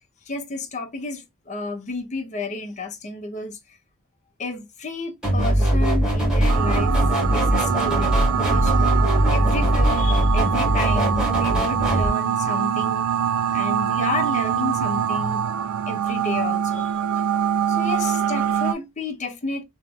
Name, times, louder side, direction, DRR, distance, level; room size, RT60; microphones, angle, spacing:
voice 1, 0.3-3.6 4.4-6.9 7.3-8.9 9.2-13.1 13.5-15.4 15.9-16.9 17.7-19.6, left 2 dB, 35° left, 0.8 m, -31 dB
sound 1, 5.2-12.1, right 1 dB, 5° right, 1.7 m, -20 dB
sound 2, 6.5-18.7, right 9 dB, 80° right, 0.3 m, -24 dB
3.2 x 3.1 x 2.4 m
head